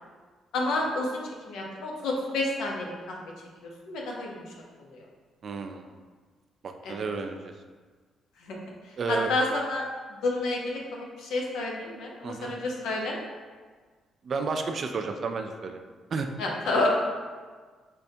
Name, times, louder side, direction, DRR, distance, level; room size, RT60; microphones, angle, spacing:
voice 1, 0.5-3.2 3.9-4.4 4.9-5.0 6.8-7.0 8.4-8.6 9.1-9.8 10.2-13.2 16.4-16.9, left 2 dB, 80° left, -1 dB, 0.7 m, -29 dB
voice 2, 5.4-5.8 6.6-7.5 9.0-9.3 12.2-12.5 14.2-15.8 16.1-16.3, right 4 dB, 50° right, 6 dB, 0.3 m, -31 dB
5.1 x 2.2 x 2.7 m, 1.5 s
cardioid pair, 90°, 0 cm